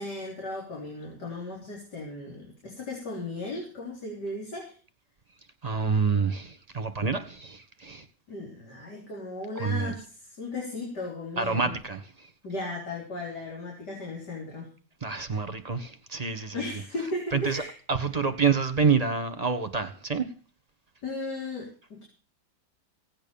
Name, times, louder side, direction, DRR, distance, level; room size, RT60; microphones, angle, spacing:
voice 1, 0.0-4.8 8.3-11.8 12.4-14.7 15.3-15.4 16.5-17.7 21.0-22.0, left 2 dB, 75° left, 4.5 m, -36 dB
voice 2, 5.6-8.0 9.6-9.9 11.4-12.3 15.0-16.6 17.3-17.6 17.9-20.3, right 5 dB, 25° right, 1.3 m, -27 dB
17.0 x 8.9 x 7.1 m
omnidirectional pair, 1.8 m